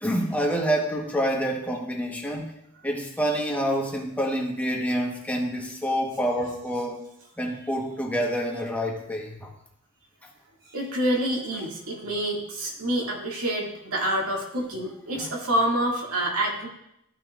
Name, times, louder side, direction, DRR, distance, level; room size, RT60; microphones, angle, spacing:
voice 1, 0.0-2.5 2.8-7.0 7.4-9.5 15.2-15.3, equal, 5° left, 0 dB, 1.1 m, -27 dB
voice 2, 10.7-16.7, right 1 dB, 85° right, -2 dB, 2.1 m, -27 dB
14.0 x 5.7 x 2.4 m, 0.78 s
head